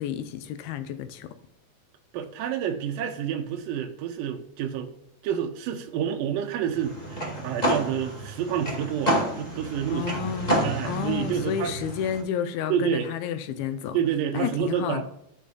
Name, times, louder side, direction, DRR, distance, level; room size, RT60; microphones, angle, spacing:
voice 1, 0.0-1.3 9.9-14.0 14.3-15.0, left 9 dB, 85° left, 2.5 m, -31 dB
voice 2, 2.1-4.9 5.2-10.2 10.6-11.7 12.7-13.1 13.9-15.0, right 9 dB, 75° right, 2.3 m, -29 dB
sound 1, 6.7-12.2, right 1 dB, 55° left, 0.4 m, -29 dB
14.0 x 5.0 x 2.4 m
omnidirectional pair, 4.4 m